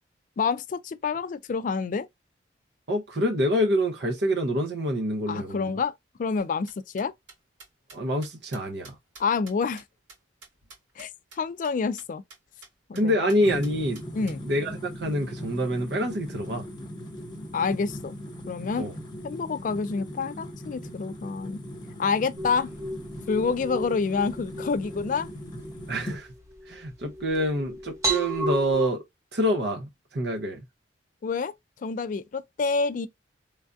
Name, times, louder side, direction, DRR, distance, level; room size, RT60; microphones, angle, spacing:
voice 1, 0.4-2.1 5.3-5.9 6.2-7.1 9.2-9.8 11.0-11.1 11.4-12.2 12.9-13.3 14.1-14.4 17.5-18.2 18.5-18.9 19.2-21.6 22.0-22.7 23.3-25.3 31.2-31.5 31.8-33.1, left 5 dB, 45° left, 0.3 m, -28 dB
voice 2, 2.9-5.8 7.9-9.0 12.9-14.0 14.4-16.6 18.8-18.9 25.9-26.3 26.7-29.0 29.3-30.6, equal, 65° right, 0.7 m, -26 dB
sound 1, 6.4-11.1 11.3-11.4 11.6-11.7 12.0-12.1 12.3-12.7 12.9-13.0 13.3-14.4, right 3 dB, 85° right, 1.9 m, -49 dB
sound 2, 13.4-26.2, equal, 25° left, 1.0 m, -39 dB
sound 3, 22.4-28.9, right 1 dB, 15° right, 1.0 m, -34 dB
3.2 x 2.4 x 2.5 m
head